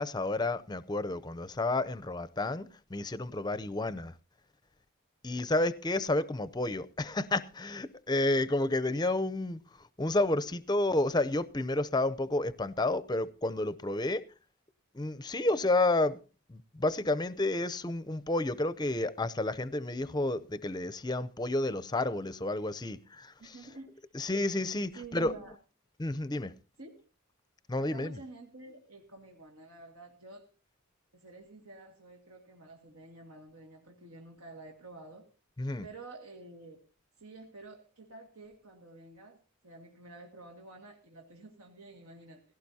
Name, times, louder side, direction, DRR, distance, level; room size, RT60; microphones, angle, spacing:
voice 1, 0.0-4.1 5.2-14.2 14.9-16.2 16.5-23.5 24.1-25.4 26.0-26.5 27.7-28.2 35.6-35.9, left 2 dB, 20° left, 0.6 m, -31 dB
voice 2, 23.4-24.1 24.9-25.6 26.8-27.0 27.8-30.5 31.1-35.3 35.8-36.8 37.2-42.4, right 2 dB, 85° right, 2.1 m, -50 dB
18.0 x 16.5 x 2.8 m
head